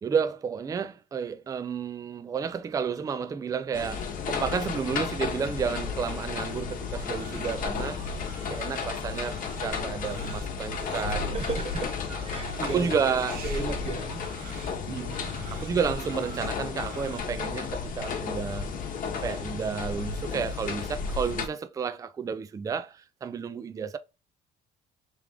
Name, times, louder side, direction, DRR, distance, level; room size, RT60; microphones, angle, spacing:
voice 1, 0.0-8.0 8.5-11.3 12.1-12.2 12.6-13.4 14.8-15.1 15.5-18.7 19.2-24.0, right 6 dB, 20° right, 0.3 m, -31 dB
sound 1, 3.7-21.5, left 5 dB, 50° left, 0.9 m, -33 dB
Crying sobbing, 6.4-17.2, right 7 dB, 60° right, 0.7 m, -48 dB
voice 2, 11.3-13.0 13.4-14.2 14.9-15.5, right 4 dB, 35° right, 1.1 m, -35 dB
3.5 x 3.4 x 3.4 m
cardioid pair, 110°, 17 cm